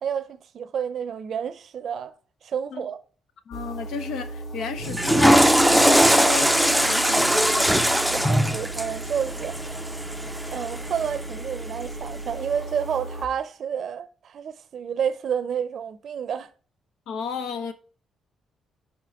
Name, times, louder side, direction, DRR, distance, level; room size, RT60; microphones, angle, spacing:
voice 1, 0.0-3.0 8.1-9.7 10.5-16.5, right 8 dB, 60° right, 0.5 m, -30 dB
voice 2, 3.5-7.9 17.1-17.7, left 6 dB, 80° left, 0.9 m, -33 dB
sound 1, 3.5-13.3, right 2 dB, 60° left, 2.0 m, -36 dB
Water / Toilet flush, 4.8-11.0, equal, ahead, 0.5 m, -20 dB
5.2 x 5.0 x 4.6 m
cardioid pair, 90°, 0 cm